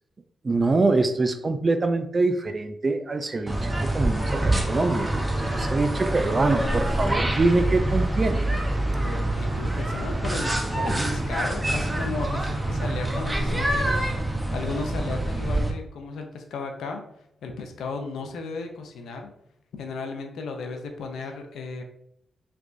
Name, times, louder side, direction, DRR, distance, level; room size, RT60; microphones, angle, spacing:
voice 1, 0.4-5.1 5.5-8.4, right 3 dB, 45° right, 9 dB, 0.4 m, -24 dB
sound 1, 3.5-15.7, right 1 dB, 20° right, 0.8 m, -26 dB
voice 2, 9.0-17.0 17.4-19.3 19.7-21.8, left 4 dB, 80° left, 4 dB, 0.5 m, -35 dB
3.4 x 3.1 x 2.5 m, 0.74 s
supercardioid pair, 45°, 0 cm